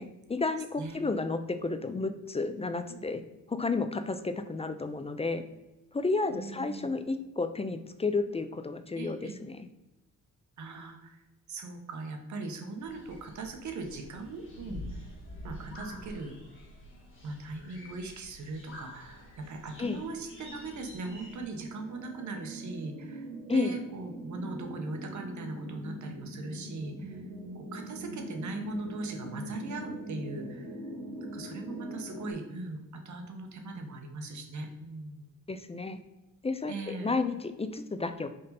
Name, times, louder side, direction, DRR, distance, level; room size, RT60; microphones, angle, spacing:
voice 1, 0.0-3.2 3.5-5.4 5.9-9.7 19.8-20.0 23.5-23.8 35.5-36.0 36.4-38.3, left 3 dB, 20° left, 10 dB, 0.4 m, -32 dB
voice 2, 6.3-6.9 9.0-9.4 10.6-11.2 11.5-15.0 15.4-16.3 17.2-27.2 27.5-30.7 31.2-35.3 36.7-37.2, right 3 dB, 60° right, 4 dB, 1.2 m, -40 dB
sound 1, 12.8-21.4, left 1 dB, 35° left, 2.2 m, -47 dB
sound 2, 19.1-32.3, right 1 dB, ahead, 1.6 m, -43 dB
5.3 x 5.3 x 4.1 m, 1.0 s
cardioid pair, 110°, 33 cm